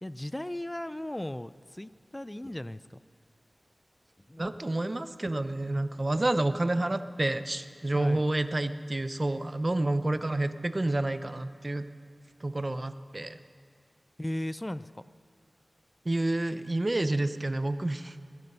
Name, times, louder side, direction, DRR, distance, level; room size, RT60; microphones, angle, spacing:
voice 1, 0.0-3.0 4.3-4.6 7.9-8.3 14.2-15.0, left 1 dB, 20° left, 15 dB, 0.4 m, -37 dB
voice 2, 4.4-11.9 12.4-13.4 16.1-18.2, right 2 dB, 35° right, 11 dB, 0.6 m, -29 dB
20.0 x 12.5 x 5.5 m, 2.2 s
wide cardioid pair, 75°, 0 cm